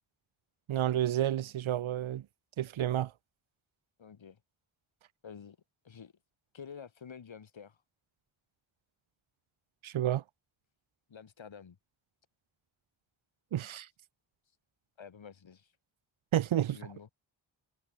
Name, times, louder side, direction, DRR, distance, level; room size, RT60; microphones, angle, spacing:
voice 1, 0.7-2.2 2.6-3.1 9.8-10.2 13.5-13.9 16.3-16.8, right 11 dB, 85° right, 0.8 m, -30 dB
voice 2, 4.0-4.4 5.2-5.6 5.8-6.1 6.5-7.8 11.1-11.8 15.0-15.7 16.7-17.1, left 7 dB, 75° left, 7.6 m, -49 dB
wide cardioid pair, 160°, 46 cm